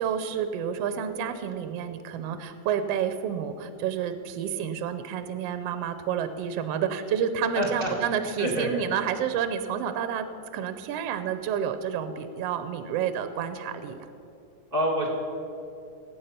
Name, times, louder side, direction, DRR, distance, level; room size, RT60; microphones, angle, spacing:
voice 1, 0.0-10.3 10.5-14.0, right 8 dB, 75° right, 10 dB, 1.5 m, -29 dB
voice 2, 7.5-7.9 8.4-8.7 14.7-15.1, equal, 30° right, -1 dB, 1.1 m, -26 dB
19.0 x 8.4 x 5.7 m, 2.7 s
omnidirectional pair, 3.6 m